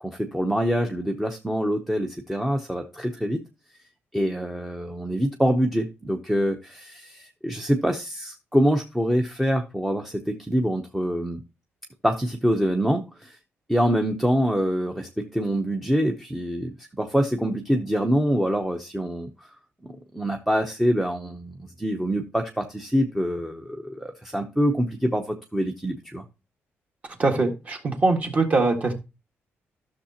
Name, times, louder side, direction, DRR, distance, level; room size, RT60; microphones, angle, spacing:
voice 1, 0.0-3.4 4.1-11.4 12.0-13.4 13.7-19.5 19.9-26.2, equal, 5° right, 4 dB, 0.7 m, -25 dB
voice 2, 27.2-28.9, right 3 dB, 35° right, 4 dB, 1.6 m, -22 dB
13.0 x 6.5 x 2.8 m, 0.27 s
cardioid pair, 155°, 4 cm